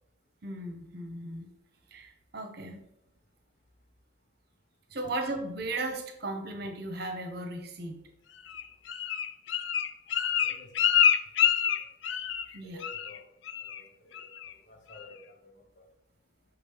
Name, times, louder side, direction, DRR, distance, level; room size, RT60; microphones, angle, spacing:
voice 1, 0.4-1.5 1.9-2.8 4.9-8.0 12.5-12.8, right 2 dB, 50° right, 1.0 m, -36 dB
Bird, 8.5-12.5 12.8-13.2 13.5-13.8 14.1-14.5 14.9-15.0, left 9 dB, 70° left, 0.4 m, -27 dB
voice 2, 10.4-11.0 12.6-13.2 13.6-14.3 14.7-15.9, left 2 dB, 40° left, 0.9 m, -52 dB
6.1 x 5.1 x 3.5 m
head